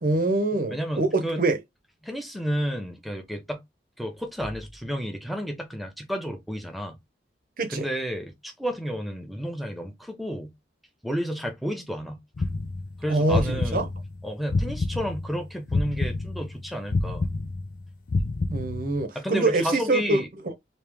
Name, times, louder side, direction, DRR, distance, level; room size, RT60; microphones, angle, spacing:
voice 1, 0.0-1.6 7.6-7.9 13.1-13.9 18.5-20.5, right 2 dB, 50° right, 0.8 m, -25 dB
voice 2, 0.6-1.4 2.0-3.6 4.0-7.0 7.7-10.5 11.0-12.2 13.0-13.9 14.2-17.3 19.1-20.3, equal, ahead, 0.8 m, -31 dB
sound 1, 12.4-15.3 15.7-19.0, left 3 dB, 45° left, 0.5 m, -28 dB
3.1 x 2.9 x 3.4 m
head